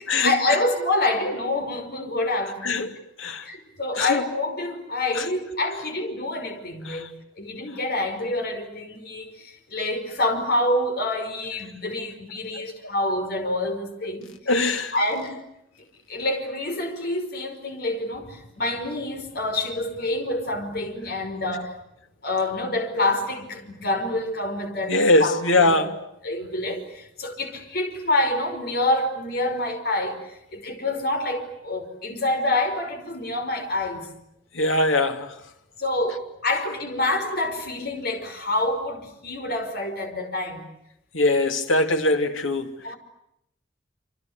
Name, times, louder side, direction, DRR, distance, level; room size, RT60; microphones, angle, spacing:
voice 1, 0.1-2.8 3.4-7.1 7.4-14.3 14.9-15.4 16.1-21.8 22.2-25.8 26.2-34.1 35.8-40.7 42.8-43.0, left 2 dB, 50° left, 5.4 m, -27 dB
voice 2, 14.5-14.9 24.9-26.0 34.5-35.3 41.1-42.7, left 2 dB, 90° left, 2.9 m, -21 dB
27.5 x 26.5 x 8.2 m
head